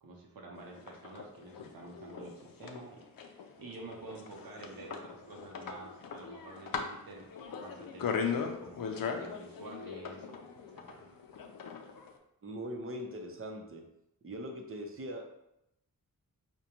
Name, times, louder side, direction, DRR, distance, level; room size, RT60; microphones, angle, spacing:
voice 1, 0.0-7.3 7.6-10.4 10.9-11.1, right 2 dB, 85° right, -1 dB, 0.7 m, -49 dB
sound 1, 0.6-12.1, left 6 dB, 75° left, 0.5 m, -39 dB
voice 2, 12.4-13.8 14.2-15.2, equal, 40° right, 2 dB, 0.6 m, -41 dB
5.1 x 2.2 x 2.9 m, 0.82 s
wide cardioid pair, 115°, 35 cm